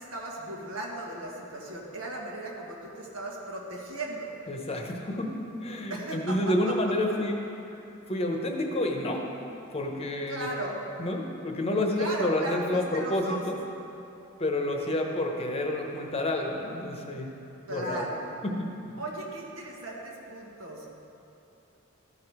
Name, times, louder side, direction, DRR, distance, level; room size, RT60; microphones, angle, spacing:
voice 1, 0.0-4.3 5.9-6.4 6.6-6.7 10.3-10.8 12.0-13.4 17.7-18.4 19.0-20.9, right 1 dB, 80° right, -2 dB, 1.5 m, -36 dB
voice 2, 4.5-5.3 5.6-7.4 8.1-9.2 9.7-10.5 11.0-13.6 14.4-17.3 17.7-18.1 18.4-18.7, left 1 dB, 30° left, 1 dB, 0.9 m, -29 dB
14.0 x 4.8 x 4.8 m, 2.8 s
head